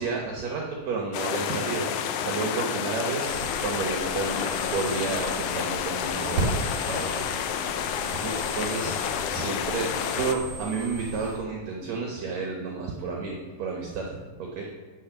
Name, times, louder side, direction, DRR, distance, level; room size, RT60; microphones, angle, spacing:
voice 1, 0.0-1.9 2.2-6.6 6.9-7.3 8.2-8.3 8.6-8.9 9.3-9.9 10.2-14.6, right 4 dB, 65° right, 0 dB, 2.0 m, -31 dB
sound 1, 1.1-10.4, left 8 dB, 75° left, 1.9 m, -30 dB
sound 2, 3.2-11.4, right 2 dB, 35° right, 3.1 m, -36 dB
8.4 x 6.3 x 6.9 m, 1.5 s
omnidirectional pair, 3.8 m